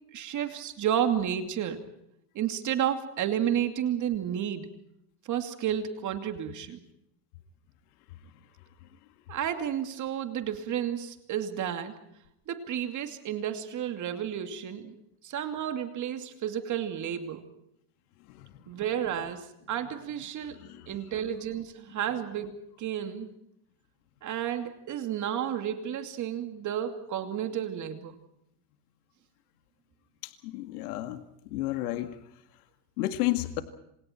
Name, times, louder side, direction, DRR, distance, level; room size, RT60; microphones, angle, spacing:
voice 1, 0.1-1.8 2.3-4.7 5.2-6.8 9.3-12.0 12.5-14.9 15.2-17.5 18.7-20.6 20.9-23.3 24.2-28.2, right 9 dB, 40° right, 7 dB, 2.6 m, -31 dB
voice 2, 30.4-31.2 31.5-32.1 33.0-33.6, left 16 dB, 85° left, 8 dB, 2.2 m, -31 dB
28.0 x 27.5 x 4.5 m, 0.77 s
supercardioid pair, 125°, 44 cm